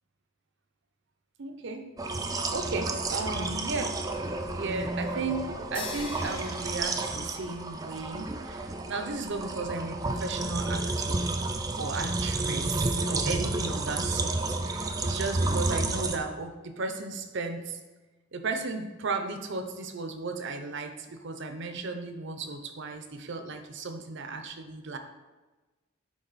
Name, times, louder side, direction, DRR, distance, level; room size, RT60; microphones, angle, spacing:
voice 1, 1.4-1.9 2.5-4.0 4.5-5.5 5.7-11.2 11.8-17.8 18.3-25.0, right 3 dB, 60° right, 7 dB, 0.7 m, -35 dB
sound 1, 2.0-16.2, right 2 dB, 20° right, 0.4 m, -31 dB
sound 2, 5.7-7.9, left 4 dB, 25° left, 0.7 m, -42 dB
9.8 x 3.6 x 4.1 m, 1.2 s
head